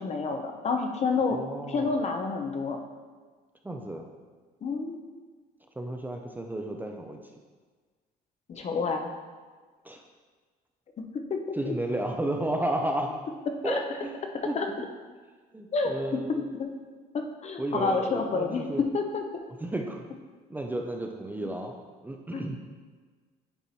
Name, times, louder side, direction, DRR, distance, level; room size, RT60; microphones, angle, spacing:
voice 1, 0.0-1.4 1.7-2.8 4.6-5.0 8.5-9.1 11.3-11.7 13.6-13.8 14.5-14.7 15.7-16.7 17.1-19.4 22.3-22.4, left 4 dB, 40° left, 4 dB, 0.8 m, -29 dB
voice 2, 1.3-2.0 3.6-4.1 5.8-7.2 9.8-10.0 11.5-13.2 13.6-14.2 14.4-14.6 15.5-16.4 17.6-18.8 19.6-20.1 20.5-21.7 22.0-22.6, right 1 dB, 10° right, 2 dB, 0.5 m, -32 dB
8.9 x 3.0 x 4.2 m, 1.4 s
cardioid pair, 110°, 17 cm